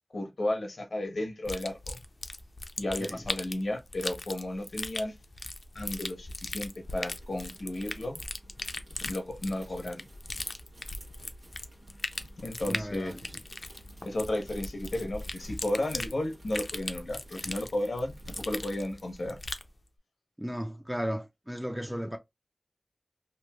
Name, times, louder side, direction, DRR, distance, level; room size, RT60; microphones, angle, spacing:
voice 1, 0.1-2.0 2.8-5.2 5.7-8.2 9.0-10.0 12.4-13.1 14.0-19.4, left 1 dB, 90° left, 0.7 m, -33 dB
sound 1, 1.4-19.7, left 2 dB, 60° left, 0.4 m, -39 dB
sound 2, 6.7-19.3, right 1 dB, 90° right, 1.3 m, -53 dB
voice 2, 12.7-13.4 20.4-22.2, equal, 10° right, 0.4 m, -35 dB
3.0 x 2.5 x 2.2 m
wide cardioid pair, 65°, 0 cm